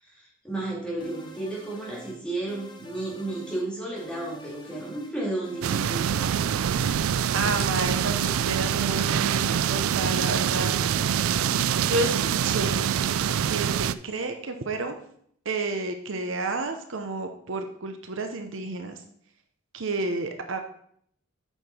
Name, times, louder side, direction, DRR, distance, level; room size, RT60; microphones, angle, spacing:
voice 1, 0.0-6.2, right 2 dB, 5° left, -5 dB, 2.6 m, -33 dB
sound 1, 1.0-2.2 2.5-3.7 4.0-5.1 5.4-6.6, right 1 dB, 20° left, 0.9 m, -46 dB
sound 2, 5.6-13.9, right 8 dB, 85° right, 0.4 m, -25 dB
voice 2, 7.3-11.1 11.9-12.9 13.4-15.0 15.4-19.0 19.7-20.6, right 2 dB, 65° right, 6 dB, 0.8 m, -31 dB
8.1 x 5.8 x 4.4 m, 0.66 s
head